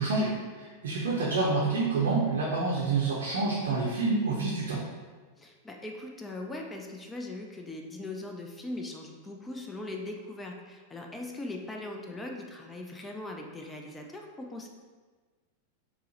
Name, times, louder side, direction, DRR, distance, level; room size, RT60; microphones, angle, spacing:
voice 1, 0.0-4.8, right 3 dB, 60° right, -4 dB, 0.6 m, -28 dB
voice 2, 5.4-14.7, left 2 dB, 10° left, 1 dB, 0.4 m, -40 dB
4.4 x 2.1 x 2.9 m, 1.4 s
figure-of-eight pair, 90°, 0 cm